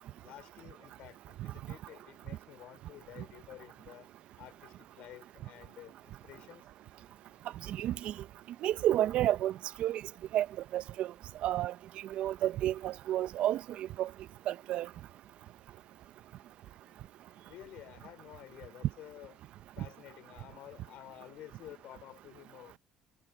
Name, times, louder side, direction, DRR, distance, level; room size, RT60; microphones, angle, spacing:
voice 1, 0.2-4.1 4.4-6.7 17.5-19.3 19.8-22.8, left 14 dB, 70° left, 3.4 m, -51 dB
voice 2, 7.7-8.1 8.6-9.5 9.8-10.0 10.3-10.5 10.7-11.1 11.4-11.7 12.2-14.1 14.5-14.9, right 12 dB, 65° right, 0.7 m, -30 dB
supercardioid pair, 70°, 2 cm